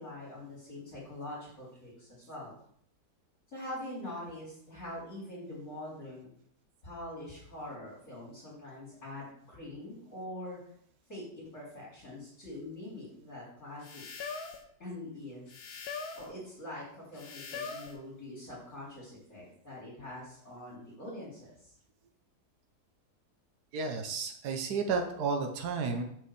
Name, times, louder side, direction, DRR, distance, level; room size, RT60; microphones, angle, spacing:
voice 1, 0.0-2.5 3.5-6.3 6.8-10.6 11.1-14.0 14.8-15.5 16.1-21.8, left 1 dB, 45° left, -9 dB, 4.9 m, -44 dB
sound 1, 13.8-14.7 15.5-16.3 17.2-18.0, left 5 dB, 70° left, 1.6 m, -41 dB
voice 2, 23.7-26.0, right 4 dB, 75° right, 4 dB, 1.6 m, -32 dB
8.6 x 5.5 x 7.9 m, 0.68 s
omnidirectional pair, 1.8 m